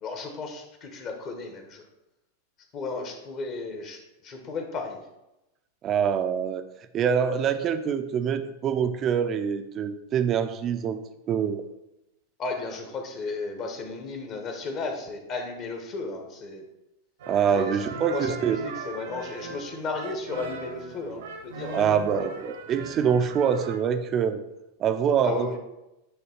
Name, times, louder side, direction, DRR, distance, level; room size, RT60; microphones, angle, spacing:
voice 1, 0.0-1.9 2.7-5.0 12.4-16.7 17.5-22.3 25.2-25.6, left 3 dB, 35° left, 5 dB, 1.1 m, -34 dB
voice 2, 5.8-6.6 6.9-11.0 11.3-11.6 17.3-18.6 21.7-24.4 24.8-25.5, right 7 dB, 30° right, 9 dB, 0.5 m, -25 dB
sound 1, 17.2-23.8, right 4 dB, 60° right, 0.9 m, -39 dB
9.1 x 3.1 x 4.4 m, 0.92 s
figure-of-eight pair, 90°, 0 cm